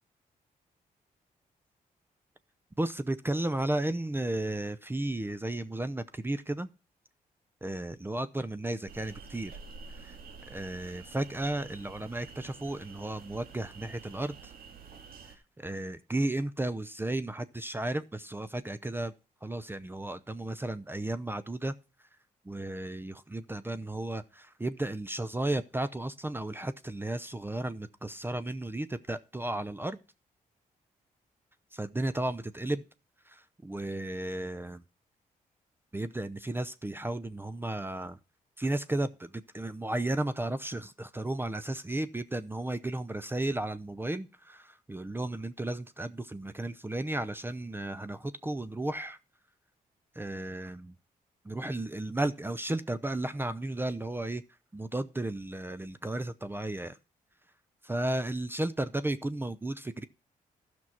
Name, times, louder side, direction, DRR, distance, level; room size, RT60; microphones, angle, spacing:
voice 1, 2.8-6.7 7.6-9.5 10.0-10.1 10.5-14.5 15.6-19.1 19.4-21.7 22.5-30.0 31.7-32.8 33.3-34.8 35.9-38.2 38.6-49.2 50.1-50.9 51.4-54.4 54.7-57.0 57.8-60.0, right 1 dB, 15° right, 0.6 m, -34 dB
sound 1, 8.9-15.4, right 5 dB, 75° right, 2.1 m, -49 dB
12.5 x 6.2 x 5.7 m
cardioid pair, 80°, 15 cm